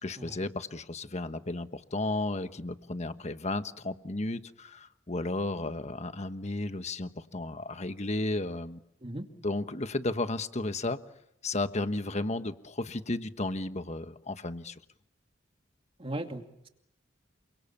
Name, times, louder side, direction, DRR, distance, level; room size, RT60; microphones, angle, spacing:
voice 1, 0.0-8.8 9.4-11.0 11.4-14.8, left 2 dB, 35° left, 10 dB, 1.3 m, -33 dB
voice 2, 16.0-16.7, right 1 dB, 30° right, 4 dB, 2.5 m, -38 dB
28.5 x 25.0 x 7.3 m, 0.83 s
head